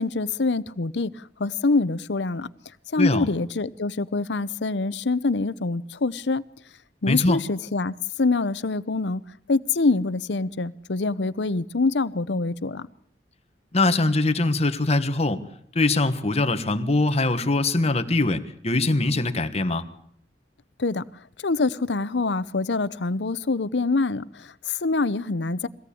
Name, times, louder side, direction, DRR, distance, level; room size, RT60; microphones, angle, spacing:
voice 1, 0.0-2.5 2.9-6.4 7.0-9.2 9.5-12.9 20.8-21.0 21.4-25.7, left 3 dB, 85° left, 0.8 m, -25 dB
voice 2, 3.0-3.3 7.1-7.4 13.7-15.4 15.7-19.9, left 2 dB, 35° left, 1.4 m, -22 dB
23.0 x 17.5 x 8.6 m
head